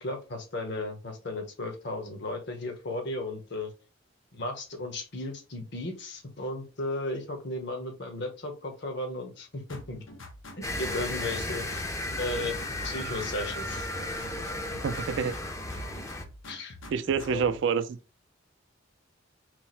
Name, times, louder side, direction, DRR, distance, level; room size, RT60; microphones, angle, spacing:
voice 1, 0.0-3.7 4.3-10.0 10.6-11.8 12.2-12.6 12.8-13.9 16.5-16.8 17.3-17.5, left 2 dB, 60° left, 1.0 m, -35 dB
sound 1, 9.7-11.4 11.7-13.4 13.7-15.4 15.7-17.6, left 1 dB, 80° left, 0.8 m, -46 dB
sound 2, 10.6-16.2, left 1 dB, 15° left, 0.5 m, -34 dB
voice 2, 14.8-15.4 16.9-18.0, right 6 dB, 65° right, 0.3 m, -27 dB
4.5 x 2.0 x 4.1 m
head